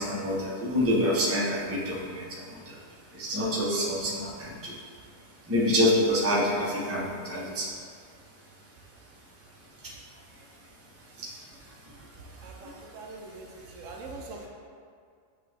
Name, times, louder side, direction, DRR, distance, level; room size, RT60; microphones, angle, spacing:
voice 1, 0.0-2.2 3.2-4.7 5.5-7.7, left 1 dB, 20° right, -5 dB, 0.4 m, -26 dB
voice 2, 12.4-13.5 13.7-14.5, right 3 dB, 75° right, 1 dB, 0.9 m, -42 dB
6.6 x 2.3 x 3.2 m, 2.3 s
omnidirectional pair, 1.4 m